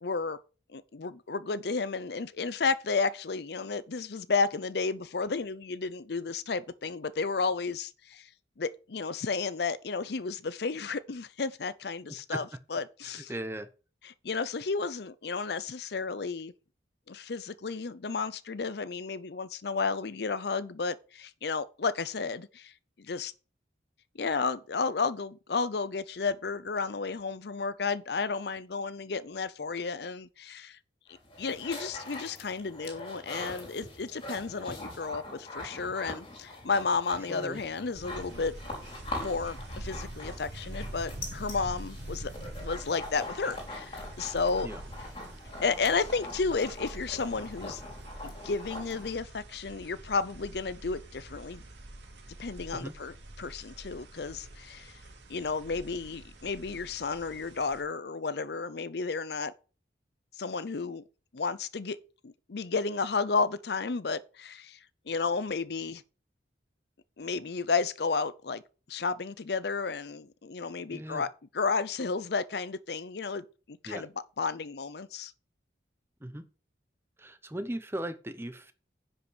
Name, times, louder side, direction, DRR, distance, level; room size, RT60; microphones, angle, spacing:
voice 1, 0.0-0.4 0.7-8.3 8.6-13.3 14.0-16.5 17.1-22.7 23.0-23.3 24.1-30.8 31.4-38.5 39.2-42.3 42.6-44.7 45.6-47.8 48.2-51.6 52.4-54.9 55.3-59.5 60.4-61.0 61.3-62.0 62.2-64.8 65.1-66.0 67.2-68.6 68.9-71.3 71.5-74.1 74.4-75.3, left 4 dB, 60° left, 0.6 m, -32 dB
voice 2, 13.0-13.7 37.3-37.6 44.6-44.8 52.7-52.9 70.9-71.2 73.9-74.0 76.2-76.4 77.2-78.7, right 1 dB, 15° right, 0.8 m, -38 dB
sound 1, 31.1-49.1, left 2 dB, 30° left, 3.1 m, -43 dB
sound 2, 37.9-57.8, right 1 dB, 75° right, 2.5 m, -45 dB
10.5 x 5.6 x 6.2 m
head